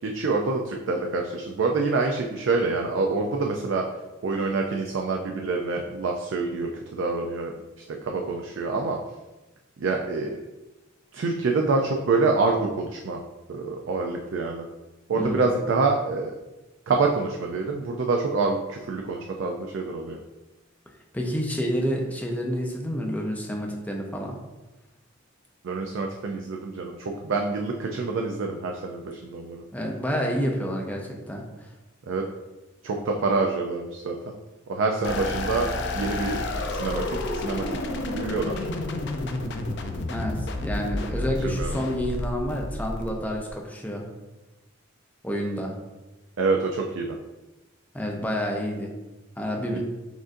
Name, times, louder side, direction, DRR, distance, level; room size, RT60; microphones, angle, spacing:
voice 1, 0.0-3.8 4.2-9.0 9.8-10.4 11.1-13.2 13.5-14.7 15.1-16.3 16.9-20.2 25.6-29.6 32.1-32.2 32.8-34.3 34.7-36.4 36.7-38.7 41.4-41.7 46.4-47.2 49.7-49.8, right 3 dB, 65° right, 2 dB, 0.4 m, -26 dB
voice 2, 15.1-15.4 21.1-24.4 29.7-31.7 40.1-44.1 45.2-45.7 47.9-48.9 49.4-49.8, equal, 10° left, 0 dB, 0.5 m, -29 dB
sound 1, 35.0-43.5, left 2 dB, 60° left, 0.4 m, -30 dB
6.2 x 2.5 x 2.5 m, 1.1 s
head